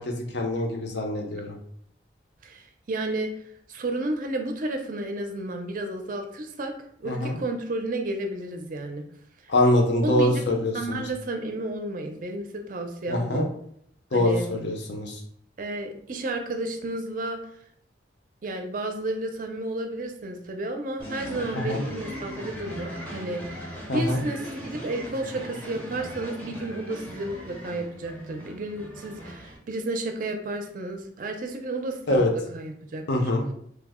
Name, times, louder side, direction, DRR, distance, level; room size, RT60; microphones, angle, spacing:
voice 1, 0.0-1.5 7.0-7.4 9.5-11.0 13.1-13.4 14.1-15.2 21.5-21.8 23.9-24.2 32.1-32.3 33.1-33.4, left 1 dB, 65° left, 2 dB, 0.6 m, -24 dB
voice 2, 2.4-3.3 3.7-6.7 7.0-9.0 9.4-9.5 10.0-13.5 14.1-14.5 15.6-17.4 18.4-33.0, right 2 dB, 45° right, 4 dB, 0.4 m, -32 dB
sound 1, 21.0-29.6, equal, 10° left, 0.6 m, -39 dB
3.2 x 2.0 x 3.5 m, 0.67 s
head